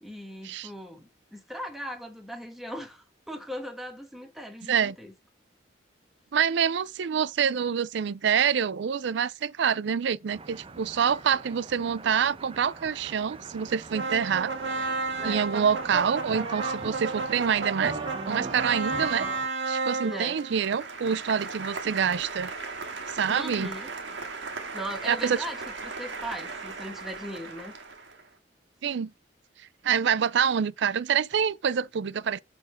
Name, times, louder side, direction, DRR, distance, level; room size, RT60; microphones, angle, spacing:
voice 1, 0.0-5.1 15.2-15.5 20.0-20.4 23.2-24.0 24.7-27.7, equal, ahead, 1.4 m, -39 dB
voice 2, 6.3-14.5 14.8-14.9 15.2-18.0 18.3-19.3 19.7-22.5 23.1-23.7 25.1-25.4 28.8-29.1 29.8-32.4, right 7 dB, 70° right, 0.4 m, -26 dB
sound 1, 10.3-19.5, right 3 dB, 30° right, 0.8 m, -41 dB
sound 2, 13.9-28.1, right 3 dB, 85° right, 1.8 m, -34 dB
6.3 x 5.2 x 5.0 m
head